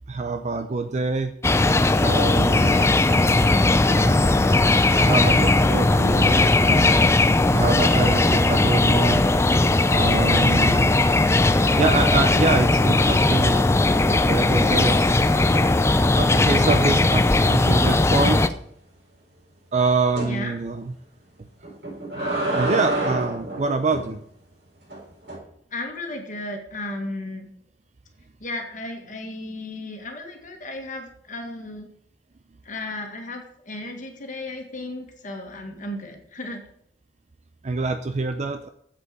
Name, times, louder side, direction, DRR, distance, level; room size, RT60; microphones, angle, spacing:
voice 1, 0.1-1.3 2.0-2.7 3.8-4.4 5.0-7.0 7.5-9.2 9.9-11.1 11.8-13.7 13.9-15.6 16.1-18.4 19.7-20.9 22.5-24.2 37.6-38.7, right 3 dB, 40° right, 8 dB, 0.6 m, -26 dB
sound 1, 1.4-18.5, left 2 dB, 15° left, 0.5 m, -18 dB
voice 2, 2.5-3.0 20.2-20.5 25.7-27.5 28.4-31.9 32.7-36.6, left 2 dB, 50° left, 3 dB, 1.9 m, -34 dB
sound 2, 9.4-9.9 13.0-13.5 13.9-16.3 16.7-16.9 17.2-17.3 17.7-17.8 20.2-20.4 21.6-24.1 24.9-25.4, right 1 dB, 65° right, 4.5 m, -30 dB
8.2 x 7.7 x 6.8 m, 0.70 s
head